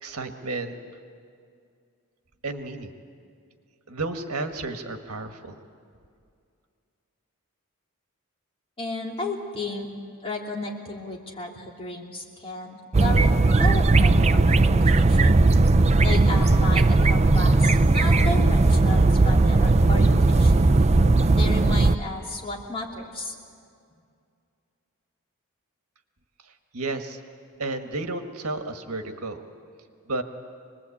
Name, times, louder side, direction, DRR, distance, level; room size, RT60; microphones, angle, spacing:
voice 1, 0.0-0.7 2.4-2.9 3.9-5.5 26.7-27.2 27.6-29.4 30.1-30.2, right 2 dB, 80° right, 6 dB, 1.6 m, -32 dB
voice 2, 8.8-9.9 10.2-13.3 13.6-15.3 16.0-20.6 21.3-23.3, left 2 dB, 25° left, -1 dB, 3.1 m, -33 dB
sound 1, 12.9-22.0, right 2 dB, 30° right, 0.6 m, -18 dB
26.0 x 20.5 x 8.6 m, 2.3 s
head